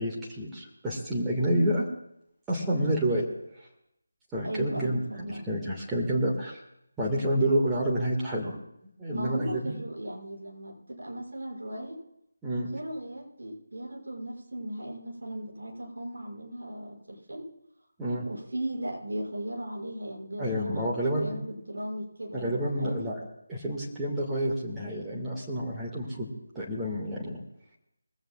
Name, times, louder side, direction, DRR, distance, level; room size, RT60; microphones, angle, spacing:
voice 1, 0.0-1.8 2.5-3.2 4.3-6.6 7.0-8.6 9.0-9.7 12.4-12.7 18.0-18.2 20.4-21.3 22.3-23.2 23.5-26.3 26.5-27.4, right 1 dB, 10° right, -6 dB, 1.7 m, -29 dB
voice 2, 4.4-5.5 9.1-12.0 12.7-17.4 18.2-23.0, right 1 dB, 60° right, -1 dB, 5.8 m, -37 dB
21.5 x 16.5 x 2.3 m, 0.78 s
figure-of-eight pair, 160°, 0 cm